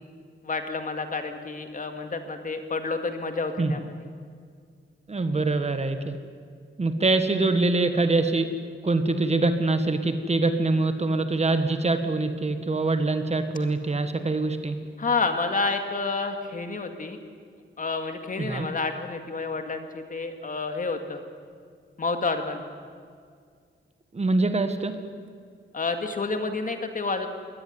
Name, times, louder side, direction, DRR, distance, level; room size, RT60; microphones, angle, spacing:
voice 1, 0.4-3.9 15.0-17.2 17.8-21.2 22.0-22.6 25.7-27.3, left 3 dB, 40° left, 6 dB, 2.1 m, -29 dB
voice 2, 5.1-6.1 6.8-8.5 8.8-14.7 18.4-18.7 24.1-24.9, right 2 dB, 30° right, 8 dB, 1.5 m, -24 dB
22.0 x 18.0 x 9.6 m, 2.1 s
wide cardioid pair, 140°, 20 cm